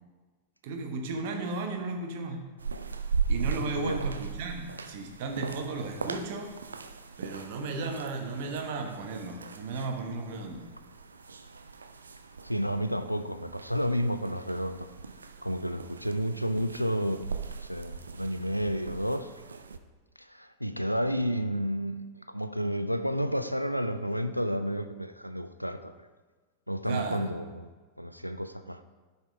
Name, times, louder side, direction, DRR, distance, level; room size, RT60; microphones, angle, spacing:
voice 1, 0.6-2.4 3.3-6.5 7.2-10.7 26.9-27.3, right 3 dB, 50° right, 4 dB, 1.1 m, -35 dB
sound 1, 2.6-19.8, right 5 dB, 75° right, 0.4 m, -38 dB
voice 2, 12.4-14.9 15.4-17.2 17.6-19.3 20.2-26.1 26.7-27.7 28.0-28.8, equal, 90° left, 10 dB, 0.4 m, -31 dB
7.6 x 5.7 x 4.7 m, 1.4 s
figure-of-eight pair, 90°, 0 cm